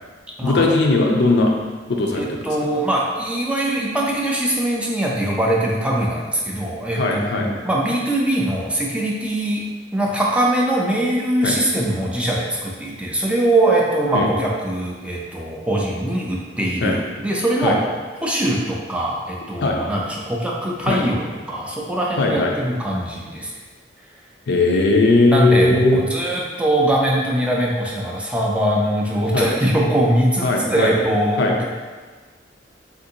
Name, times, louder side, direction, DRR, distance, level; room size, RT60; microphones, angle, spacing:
voice 1, 0.4-1.5 1.9-2.5 6.9-7.5 11.4-11.6 14.1-14.3 16.8-17.0 17.6-17.8 19.6-19.8 20.9-21.0 22.2-22.5 24.5-26.0 29.3-29.5 30.4-30.9 31.4-31.5, left 2 dB, 65° left, 1 dB, 0.4 m, -18 dB
voice 2, 2.1-9.6 9.9-17.8 18.2-23.5 25.3-31.6, right 1 dB, 5° right, -3 dB, 0.4 m, -22 dB
3.6 x 2.5 x 2.7 m, 1.4 s
head